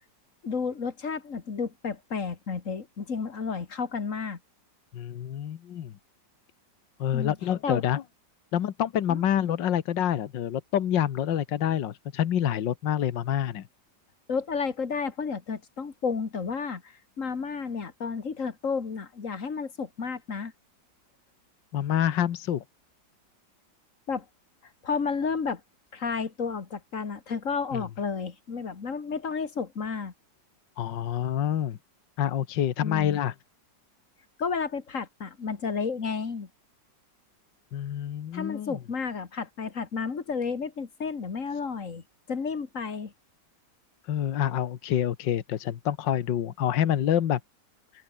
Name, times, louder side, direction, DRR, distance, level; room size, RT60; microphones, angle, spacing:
voice 1, 0.4-4.4 7.1-7.4 7.6-7.8 9.1-9.2 14.3-20.5 24.1-24.3 24.8-25.6 25.9-30.1 32.8-33.2 34.4-36.5 38.3-42.0 42.3-43.1, left 5 dB, 45° left, 2.3 m, -32 dB
voice 2, 4.9-5.9 7.0-8.0 8.5-13.7 21.7-22.6 27.7-27.8 30.8-31.8 32.2-33.3 37.7-38.8 44.1-47.4, left 10 dB, 80° left, 1.8 m, -27 dB
open air
omnidirectional pair, 2.0 m